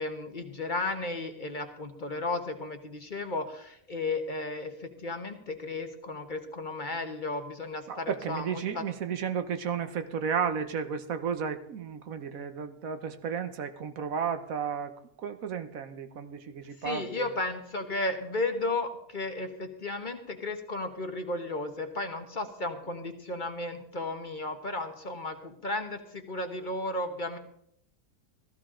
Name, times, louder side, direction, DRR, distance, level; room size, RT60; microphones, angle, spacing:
voice 1, 0.0-8.8 16.8-27.4, left 2 dB, 40° left, 6 dB, 1.2 m, -34 dB
voice 2, 7.9-14.9 15.2-17.3, right 7 dB, 75° right, 9 dB, 1.4 m, -33 dB
16.0 x 13.5 x 3.8 m, 0.71 s
omnidirectional pair, 1.5 m